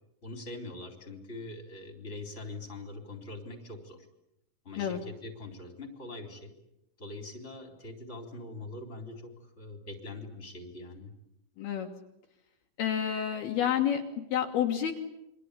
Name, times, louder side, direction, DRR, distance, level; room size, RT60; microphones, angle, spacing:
voice 1, 0.2-4.1 4.6-6.5 7.0-11.1, left 2 dB, 15° left, 5 dB, 3.8 m, -43 dB
voice 2, 11.6-11.9 12.8-14.0 14.3-15.0, left 9 dB, 65° left, 2 dB, 3.3 m, -29 dB
28.5 x 24.5 x 8.4 m, 0.87 s
omnidirectional pair, 5.1 m